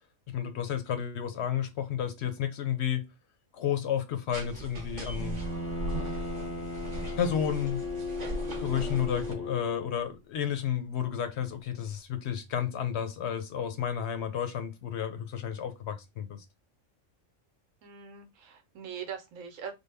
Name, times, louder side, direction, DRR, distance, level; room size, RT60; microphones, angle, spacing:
voice 1, 0.3-3.1 3.5-5.4 6.8-7.8 8.6-16.4, left 9 dB, 65° left, 0.8 m, -32 dB
sound 1, 4.3-9.3, right 1 dB, 40° right, 0.8 m, -38 dB
Bowed string instrument, 5.2-10.0, left 2 dB, 10° left, 0.8 m, -36 dB
voice 2, 17.8-19.7, right 7 dB, 80° right, 1.1 m, -41 dB
3.4 x 2.0 x 3.3 m
omnidirectional pair, 1.4 m